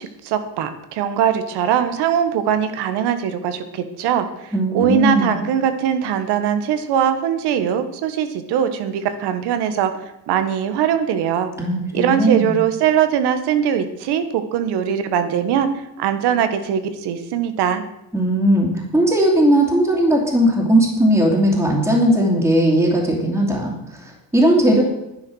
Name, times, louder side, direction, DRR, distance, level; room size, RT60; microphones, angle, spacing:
voice 1, 0.0-11.5 11.9-15.7 16.0-17.8, right 9 dB, 85° right, 10 dB, 1.5 m, -21 dB
voice 2, 4.5-5.3 11.6-12.5 18.1-24.8, right 1 dB, 5° right, -5 dB, 2.7 m, -17 dB
10.5 x 10.0 x 6.3 m, 0.88 s
cardioid pair, 130°, 39 cm